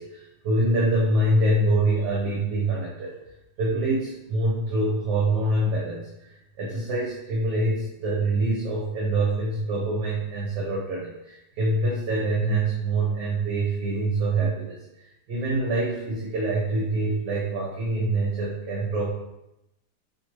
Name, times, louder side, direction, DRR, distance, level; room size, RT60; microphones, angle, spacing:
voice 1, 0.0-3.1 3.6-6.3 6.6-14.8 15.3-19.1, right 2 dB, 65° right, -4 dB, 1.2 m, -25 dB
4.3 x 3.2 x 2.9 m, 0.89 s
omnidirectional pair, 2.2 m